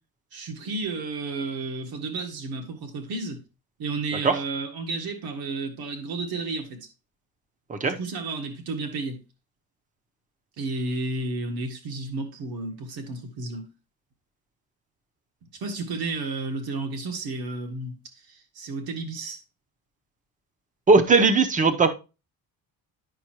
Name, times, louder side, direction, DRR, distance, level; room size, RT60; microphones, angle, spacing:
voice 1, 0.3-3.4 3.8-6.9 7.9-9.2 10.6-13.7 15.5-18.0 18.3-19.4, right 3 dB, 80° right, 1.8 m, -32 dB
voice 2, 20.9-21.9, right 4 dB, 20° right, 0.7 m, -18 dB
9.8 x 5.6 x 2.9 m
cardioid pair, 160°, 36 cm